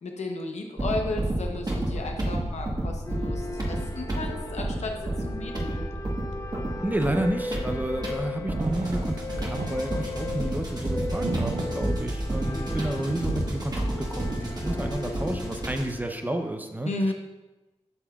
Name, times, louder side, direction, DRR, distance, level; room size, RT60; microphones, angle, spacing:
voice 1, 0.0-5.7 16.8-17.1, left 2 dB, 85° left, 2 dB, 0.9 m, -33 dB
sound 1, 0.8-16.0, right 1 dB, 35° right, 1.3 m, -31 dB
sound 2, 3.1-16.5, left 3 dB, 25° left, 0.5 m, -38 dB
voice 2, 6.8-17.1, right 1 dB, 15° right, 5 dB, 0.6 m, -31 dB
sound 3, 8.4-12.7 13.0-13.8, right 4 dB, 80° right, 0.6 m, -35 dB
7.9 x 5.8 x 2.4 m, 1.1 s
cardioid pair, 55°, 11 cm